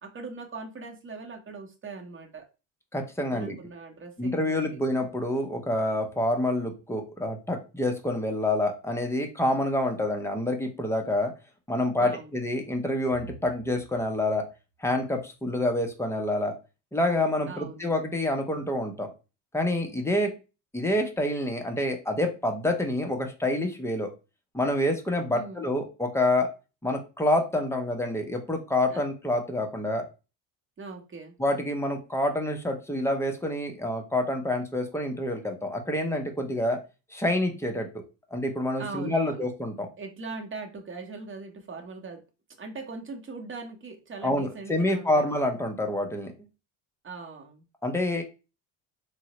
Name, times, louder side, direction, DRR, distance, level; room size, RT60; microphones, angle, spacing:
voice 1, 0.0-2.5 3.3-4.6 12.0-12.4 17.5-17.9 25.3-25.7 28.9-29.0 30.8-31.3 38.8-39.5 40.0-42.2 42.6-45.4 47.0-47.7, right 4 dB, 25° right, 3 dB, 0.8 m, -40 dB
voice 2, 2.9-3.6 4.2-11.3 11.7-14.4 14.8-16.5 16.9-19.1 19.5-20.3 20.7-24.1 24.5-26.5 26.8-30.0 31.4-36.8 37.1-37.9 38.3-39.9 44.2-46.3 47.8-48.2, left 1 dB, 5° left, 3 dB, 0.5 m, -27 dB
3.6 x 2.1 x 2.9 m, 0.31 s
cardioid pair, 110°, 45 cm